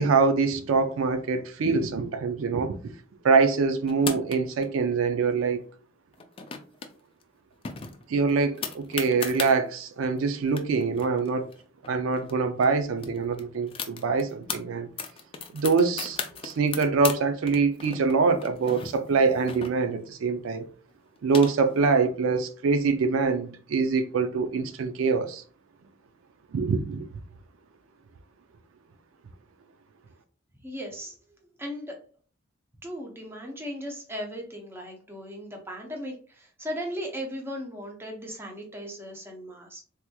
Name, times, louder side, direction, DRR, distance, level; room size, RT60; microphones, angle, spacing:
voice 1, 0.0-2.9 3.2-5.6 8.1-11.5 11.9-14.9 15.5-16.2 16.4-20.7 21.2-25.4 26.5-27.1, right 4 dB, 85° right, 0.4 m, -24 dB
sound 1, 3.9-4.7 6.1-6.9 7.2-7.3 7.6-9.5 10.2-10.3 10.5-12.3 12.6-12.7 13.0-14.6 15.0-17.2 17.5-20.1 20.9-21.9, left 6 dB, 30° left, 0.3 m, -36 dB
voice 2, 30.6-31.1 31.6-32.0 32.8-39.8, equal, 10° right, 0.6 m, -37 dB
3.4 x 2.9 x 2.2 m
head